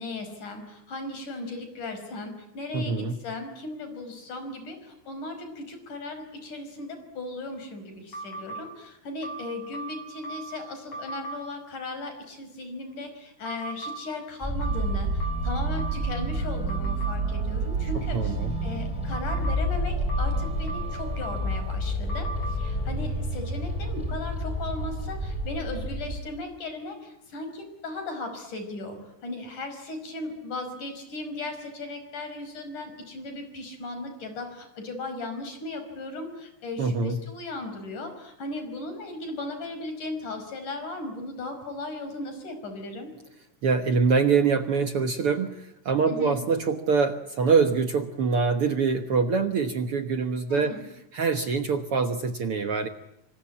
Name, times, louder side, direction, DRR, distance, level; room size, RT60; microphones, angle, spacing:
voice 1, 0.0-43.1 46.0-46.4 50.5-50.8, left 2 dB, 65° left, 7 dB, 6.6 m, -37 dB
voice 2, 2.7-3.2 18.0-18.5 36.8-37.2 43.6-50.8 51.1-52.9, right 5 dB, 55° right, 8 dB, 1.8 m, -24 dB
sound 1, 8.1-8.6 9.2-10.6 10.9-11.4 13.5-14.0 14.6-16.2 16.7-17.1 19.1-19.6 20.1-21.6 22.1-22.6, right 3 dB, 50° left, 9.2 m, -37 dB
sound 2, 14.4-26.2, right 1 dB, ahead, 7.7 m, -29 dB
27.0 x 25.5 x 8.8 m, 0.87 s
omnidirectional pair, 3.8 m